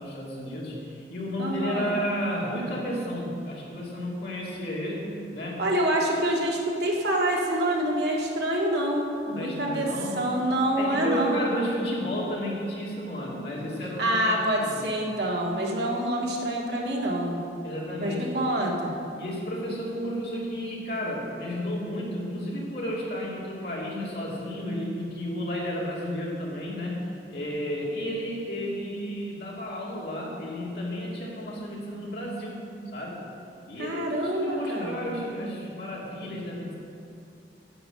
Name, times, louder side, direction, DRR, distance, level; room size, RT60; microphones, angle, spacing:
voice 1, 0.0-5.6 9.3-10.2 10.8-14.2 14.6-14.8 17.6-18.4 19.2-33.2 33.7-36.7, equal, 60° left, -4 dB, 2.7 m, -32 dB
voice 2, 1.4-2.0 5.6-9.9 10.2-11.4 14.0-17.4 18.0-18.9 33.8-35.0, right 1 dB, 70° right, -2 dB, 1.8 m, -26 dB
11.0 x 8.2 x 6.5 m, 2.6 s
head